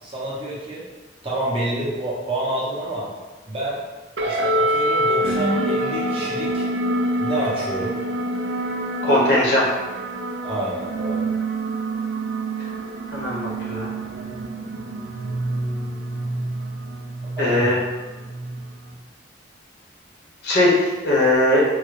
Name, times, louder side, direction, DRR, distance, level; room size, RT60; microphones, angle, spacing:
voice 1, 0.0-0.8 1.2-3.1 3.5-3.8 4.2-6.7 7.2-8.0 10.4-11.3 17.4-17.7, right 1 dB, 30° right, -6 dB, 0.8 m, -28 dB
sound 1, 4.2-18.9, right 1 dB, 85° right, 0.4 m, -26 dB
voice 2, 9.0-9.6 13.1-13.9 17.4-17.8 20.4-20.7 21.0-21.6, left 1 dB, 60° left, -4 dB, 0.9 m, -19 dB
3.6 x 2.1 x 3.2 m, 1.2 s
head